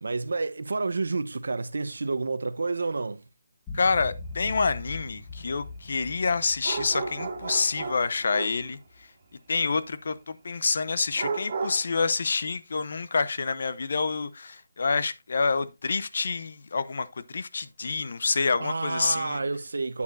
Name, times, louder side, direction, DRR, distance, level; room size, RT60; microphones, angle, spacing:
voice 1, 0.0-3.2 18.6-20.0, right 3 dB, 75° right, 0.7 m, -29 dB
voice 2, 3.7-8.8 9.5-17.1 17.3-19.4, left 4 dB, 55° left, 0.7 m, -27 dB
sound 1, 3.7-9.0, left 3 dB, 10° left, 1.2 m, -42 dB
sound 2, 6.6-8.7 11.1-11.8, right 4 dB, 35° right, 2.3 m, -33 dB
8.5 x 8.3 x 2.5 m
hypercardioid pair, 170°, 0 cm